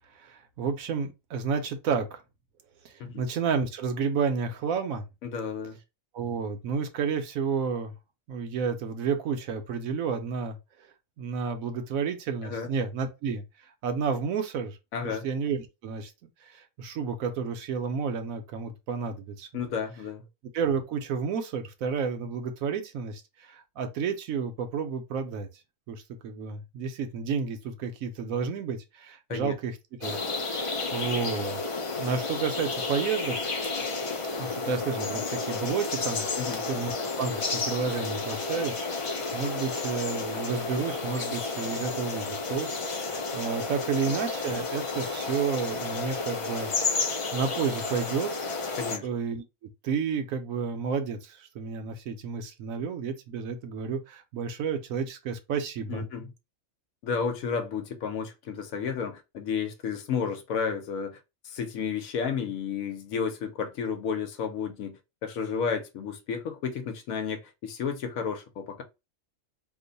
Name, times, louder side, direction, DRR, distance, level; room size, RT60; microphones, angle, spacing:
voice 1, 0.1-2.2 2.8-5.1 6.1-7.9 8.3-10.9 11.2-13.4 13.8-14.8 15.0-19.5 20.5-25.5 25.9-30.2 30.5-31.6 32.0-33.4 34.4-36.4 36.7-42.7 43.0-48.3 49.0-56.1, right 6 dB, 80° right, 1.1 m, -31 dB
voice 2, 5.2-5.8 12.4-12.7 14.9-15.2 19.5-20.2 29.3-29.5 36.4-36.6 48.8-49.1 55.9-56.3 57.0-61.2 61.4-68.8, left 6 dB, 80° left, 1.2 m, -32 dB
sound 1, 30.0-49.0, left 3 dB, 60° left, 0.3 m, -31 dB
3.0 x 2.1 x 3.9 m
omnidirectional pair, 1.4 m